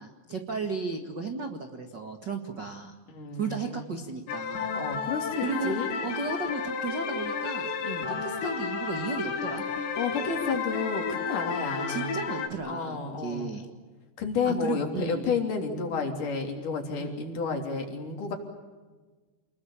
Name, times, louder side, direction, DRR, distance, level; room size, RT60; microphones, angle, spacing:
voice 1, 0.0-2.9 3.3-4.7 5.4-5.7 6.0-7.7 8.1-9.6 11.9-13.7 14.4-15.2 17.0-17.2, right 4 dB, 50° right, 5 dB, 1.2 m, -34 dB
voice 2, 3.1-3.9 4.8-5.9 7.8-8.1 10.0-12.1 12.6-13.6 14.2-18.3, left 5 dB, 50° left, 3 dB, 4.7 m, -31 dB
sound 1, 4.3-12.5, left 5 dB, 80° left, 4.6 m, -32 dB
29.0 x 21.5 x 8.8 m, 1.3 s
omnidirectional pair, 5.0 m